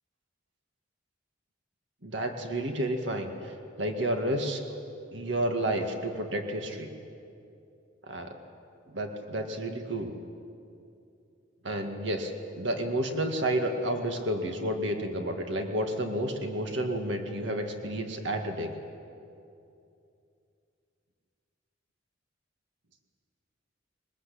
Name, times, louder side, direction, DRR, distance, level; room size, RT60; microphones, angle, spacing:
voice 1, 2.0-4.6 5.1-6.9 8.1-8.3 8.9-10.1 11.6-18.7, right 1 dB, 70° right, 4 dB, 2.1 m, -31 dB
22.5 x 20.5 x 8.6 m, 2.6 s
head